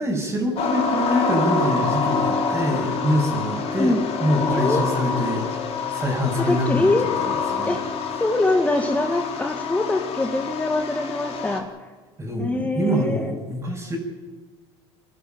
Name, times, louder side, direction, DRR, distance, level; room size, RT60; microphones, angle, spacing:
voice 1, 0.0-3.9 4.2-6.9 7.5-7.8 12.2-14.0, equal, 15° right, -5 dB, 6.4 m, -25 dB
sound 1, 0.6-11.6, left 5 dB, 45° left, 3.9 m, -26 dB
voice 2, 4.5-4.8 6.4-7.1 7.7-7.8 8.2-11.6 12.4-13.4, left 2 dB, 10° left, 3 dB, 1.8 m, -23 dB
26.5 x 12.5 x 9.2 m, 1.4 s
supercardioid pair, 100°, 14 cm